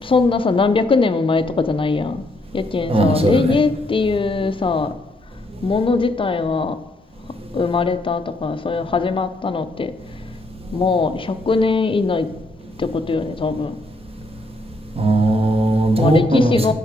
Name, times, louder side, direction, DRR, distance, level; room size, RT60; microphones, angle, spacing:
voice 1, 0.0-2.2 2.5-4.9 5.6-6.8 7.5-9.9 10.7-12.3 12.8-13.7 16.0-16.7, left 4 dB, 30° left, 10 dB, 0.4 m, -20 dB
voice 2, 2.9-3.6 15.0-16.7, right 1 dB, 30° right, 6 dB, 0.9 m, -17 dB
10.0 x 3.6 x 4.8 m, 1.0 s
wide cardioid pair, 120°, 19 cm